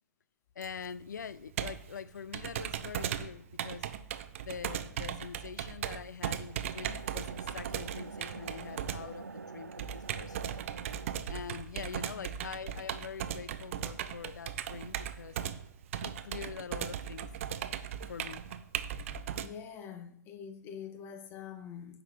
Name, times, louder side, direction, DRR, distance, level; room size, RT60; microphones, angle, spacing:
voice 1, 0.6-3.9 4.4-10.4 11.3-15.4 16.0-17.3 18.1-18.5, left 7 dB, 70° left, 0.4 m, -44 dB
Computer keyboard, 0.6-19.5, right 9 dB, 45° right, 0.6 m, -38 dB
sound 1, 6.4-11.1, right 4 dB, 85° right, 0.6 m, -46 dB
voice 2, 19.3-22.0, left 8 dB, 25° left, 0.8 m, -45 dB
14.5 x 5.1 x 3.0 m
figure-of-eight pair, 125°, 10 cm